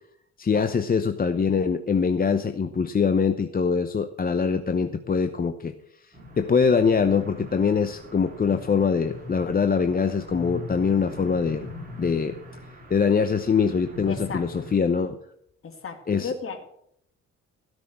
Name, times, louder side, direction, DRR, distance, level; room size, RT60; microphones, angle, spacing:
voice 1, 0.4-5.7 6.4-11.7 12.0-12.4 12.9-15.2 16.1-16.3, left 5 dB, 30° left, 8 dB, 0.8 m, -23 dB
sound 1, 6.1-14.7, left 2 dB, 30° right, 4.6 m, -41 dB
voice 2, 14.1-14.7 15.6-16.6, left 5 dB, 45° left, 6 dB, 2.4 m, -35 dB
16.5 x 6.4 x 7.5 m, 0.73 s
cardioid pair, 90°, 30 cm